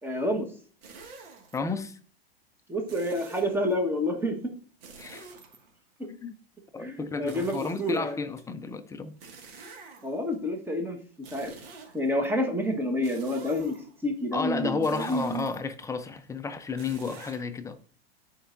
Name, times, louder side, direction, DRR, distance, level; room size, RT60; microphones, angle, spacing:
voice 1, 0.0-0.5 2.7-4.4 6.8-8.2 10.0-11.0 11.3-11.5 11.9-15.5, left 1 dB, 5° right, 1.4 m, -29 dB
sound 1, 0.8-1.6 2.9-3.8 4.8-6.1 7.3-8.4 9.2-10.3 11.2-12.3 13.0-14.0 14.8-15.9 16.8-17.4, right 4 dB, 65° right, 2.0 m, -48 dB
voice 2, 1.5-2.0 5.0-5.3 6.2-6.3 6.7-9.2 14.3-17.8, left 4 dB, 10° left, 0.5 m, -32 dB
11.0 x 4.6 x 2.6 m
hypercardioid pair, 120°, 31 cm